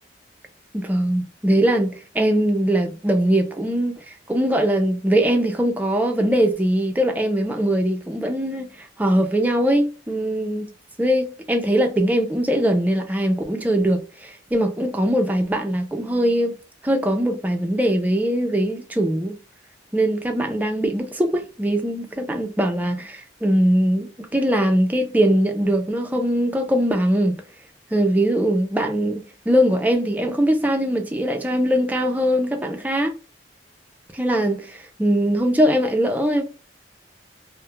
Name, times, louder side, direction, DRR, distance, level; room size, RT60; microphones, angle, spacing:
voice 1, 0.7-3.9 4.3-10.7 11.0-16.6 16.8-19.4 19.9-27.4 27.9-33.1 34.1-36.4, right 1 dB, 10° right, 0.4 m, -21 dB
2.3 x 2.0 x 2.9 m
head